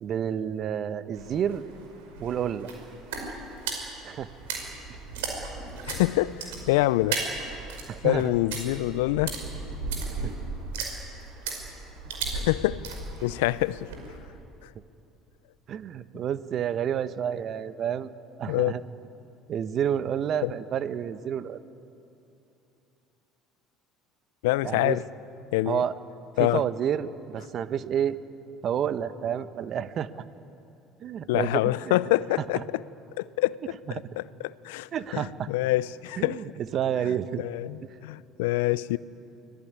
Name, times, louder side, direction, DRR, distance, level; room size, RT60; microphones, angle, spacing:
voice 1, 0.0-1.6 2.2-2.7 4.0-4.3 7.9-8.3 10.0-10.1 15.7-18.1 18.4-18.8 19.5-21.6 24.6-25.0 25.7-25.9 26.4-28.2 28.6-30.1 31.0-32.0 34.9-35.5 36.2-37.5, right 9 dB, 50° right, 1.1 m, -29 dB
sound 1, 1.1-14.2, right 4 dB, 80° right, 5.2 m, -36 dB
voice 2, 5.9-7.2 8.0-9.3 12.3-12.9 13.2-13.9 14.6-14.7 18.5-18.8 20.4-20.5 24.4-25.0 25.5-25.8 26.4-26.7 31.3-32.8 33.2-33.7 34.2-36.4 37.1-39.0, left 18 dB, 75° left, 0.5 m, -26 dB
24.5 x 19.5 x 9.7 m
hypercardioid pair, 65°, 0 cm